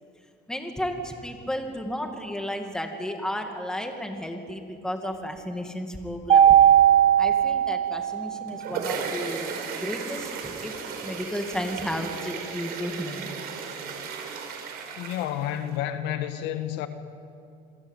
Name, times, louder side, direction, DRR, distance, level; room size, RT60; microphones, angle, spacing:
voice 1, 0.5-6.6 7.2-10.7 11.0-13.3, equal, 5° left, 2.3 m, -33 dB
Mallet percussion, 6.3-8.5, right 10 dB, 40° right, 2.0 m, -18 dB
sound 1, 8.3-15.8, right 6 dB, 60° right, 4.9 m, -35 dB
voice 2, 14.9-16.9, left 11 dB, 75° left, 1.7 m, -30 dB
27.5 x 22.5 x 8.2 m
cardioid pair, 150°, 18 cm